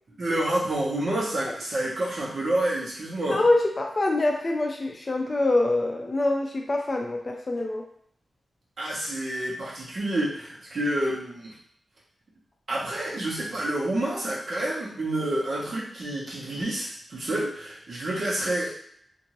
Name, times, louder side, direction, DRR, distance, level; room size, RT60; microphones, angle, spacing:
voice 1, 0.2-3.4 8.8-11.5 12.7-18.7, right 1 dB, 55° right, -6 dB, 1.0 m, -28 dB
voice 2, 3.3-7.8, left 2 dB, 30° left, 1 dB, 0.4 m, -25 dB
2.7 x 2.6 x 3.0 m, 0.65 s
wide cardioid pair, 135°, 0 cm